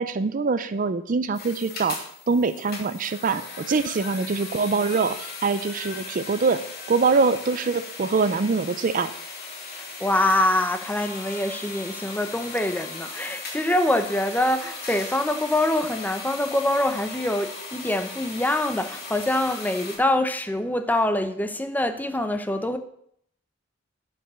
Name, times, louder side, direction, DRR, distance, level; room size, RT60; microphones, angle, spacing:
voice 1, 0.0-2.0 2.3-9.1, right 4 dB, 45° right, 0.5 m, -24 dB
sound 1, 1.3-20.0, left 3 dB, 55° left, 2.6 m, -38 dB
voice 2, 9.7-22.8, left 1 dB, 10° left, 0.8 m, -25 dB
11.0 x 5.5 x 6.8 m
head